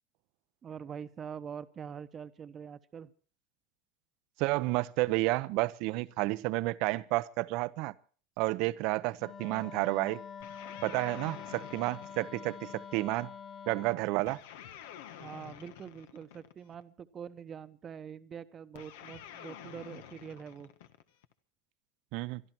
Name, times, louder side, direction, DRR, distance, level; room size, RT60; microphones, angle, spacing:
voice 1, 0.6-3.1 15.1-20.7, right 7 dB, 30° right, 1.0 m, -44 dB
voice 2, 4.4-7.9 8.4-10.2 10.8-13.3 13.7-14.4 22.1-22.4, right 21 dB, 60° right, 0.7 m, -31 dB
Wind instrument woodwind instrument, 9.2-14.1, left 7 dB, 35° left, 2.1 m, -46 dB
sound 1, 10.4-13.0 14.3-16.8 18.8-21.3, left 11 dB, 80° left, 1.4 m, -49 dB
23.5 x 12.5 x 4.5 m
supercardioid pair, 120°, 0 cm